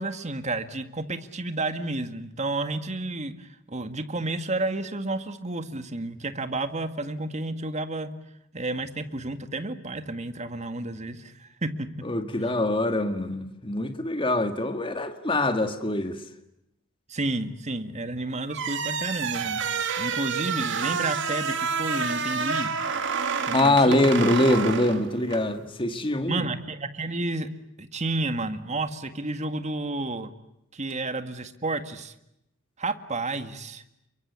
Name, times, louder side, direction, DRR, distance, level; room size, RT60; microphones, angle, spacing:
voice 1, 0.0-8.1 8.5-11.9 17.1-22.7 23.5-24.0 26.3-27.5 27.8-30.3 30.7-32.1 32.8-33.8, right 2 dB, 35° right, 9 dB, 1.9 m, -31 dB
voice 2, 12.0-16.2 23.5-26.5, left 1 dB, 25° left, 8 dB, 1.8 m, -24 dB
sound 1, 18.5-25.5, right 5 dB, 60° right, 2.5 m, -29 dB
28.5 x 23.5 x 8.3 m, 0.82 s
head